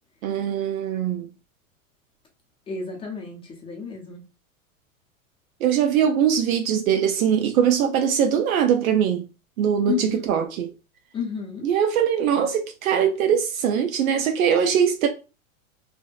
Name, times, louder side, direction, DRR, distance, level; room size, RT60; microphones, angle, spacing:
voice 1, 0.2-1.3 5.6-9.3 9.6-10.7 11.6-15.1, right 8 dB, 85° right, 0.5 m, -21 dB
voice 2, 2.7-4.2 9.9-10.2 11.1-11.6, left 6 dB, 15° left, 0.5 m, -31 dB
2.6 x 2.1 x 2.2 m
hypercardioid pair, 120°, 41 cm